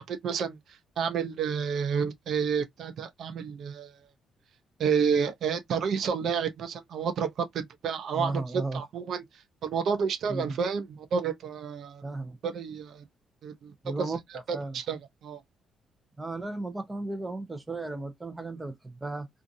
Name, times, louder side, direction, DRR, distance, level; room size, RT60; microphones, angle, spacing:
voice 1, 0.1-4.0 4.8-12.0 12.4-13.0 13.4-14.1 14.5-15.4, right 6 dB, 65° right, 0.5 m, -30 dB
voice 2, 8.1-8.8 10.3-10.6 12.0-12.4 13.8-14.2 14.5-14.8 16.2-19.3, right 2 dB, 15° right, 0.7 m, -34 dB
2.6 x 2.5 x 2.5 m
cardioid pair, 90°, 0 cm